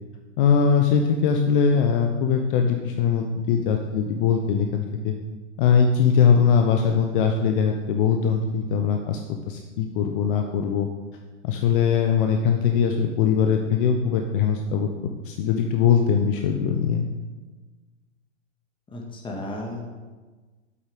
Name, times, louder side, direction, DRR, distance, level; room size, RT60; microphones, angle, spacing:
voice 1, 0.4-5.1 5.6-9.2 9.5-10.9 11.4-14.9 15.2-17.1, left 6 dB, 45° left, 4 dB, 0.7 m, -21 dB
voice 2, 18.9-19.8, left 1 dB, 15° left, 0 dB, 1.6 m, -34 dB
8.4 x 7.3 x 3.6 m, 1.3 s
hypercardioid pair, 115°, 37 cm